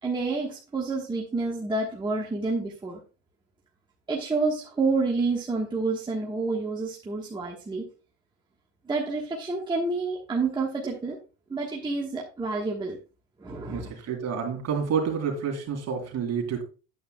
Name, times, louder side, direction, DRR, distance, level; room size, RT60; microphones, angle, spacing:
voice 1, 0.0-3.0 4.1-7.9 8.9-11.2 11.5-13.0 13.4-13.9, right 3 dB, 10° right, -2 dB, 1.3 m, -29 dB
voice 2, 13.7-16.6, right 6 dB, 40° right, 3 dB, 2.7 m, -29 dB
8.9 x 8.5 x 2.2 m, 0.33 s
supercardioid pair, 135°, 39 cm